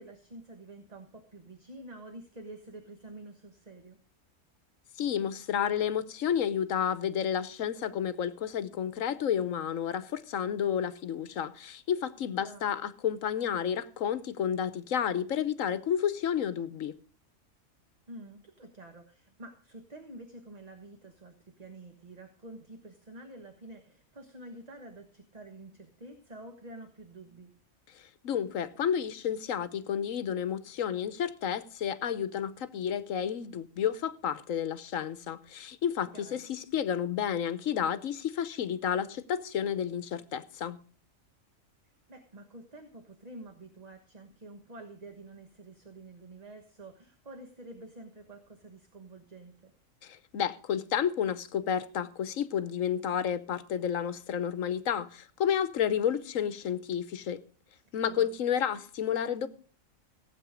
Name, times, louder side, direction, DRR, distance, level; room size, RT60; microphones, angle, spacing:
voice 1, 0.0-4.0 12.3-12.7 18.1-27.5 36.1-36.5 41.8-49.7 58.0-58.3, right 2 dB, 30° right, 1.4 m, -48 dB
voice 2, 5.0-16.9 28.2-40.8 50.0-57.4 57.9-59.5, left 8 dB, 80° left, 1.2 m, -31 dB
16.0 x 8.2 x 5.0 m
omnidirectional pair, 1.4 m